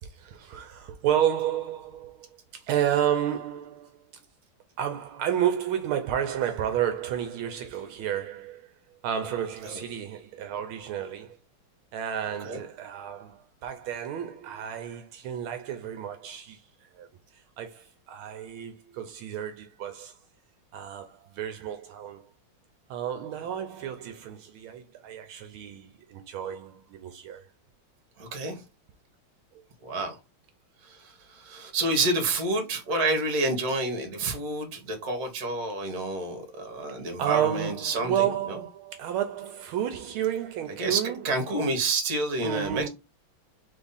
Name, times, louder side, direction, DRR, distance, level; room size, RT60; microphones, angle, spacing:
voice 1, 0.0-2.3 2.5-4.0 4.8-8.7 9.0-11.4 11.9-17.1 17.3-20.2 20.7-22.2 22.9-27.5 37.2-41.3 42.4-42.9, right 10 dB, 80° right, 1.5 m, -31 dB
voice 2, 28.2-28.6 29.8-30.2 30.8-38.2 40.8-41.0 41.2-42.9, right 2 dB, 50° right, 1.5 m, -29 dB
3.5 x 3.4 x 4.0 m
omnidirectional pair, 2.3 m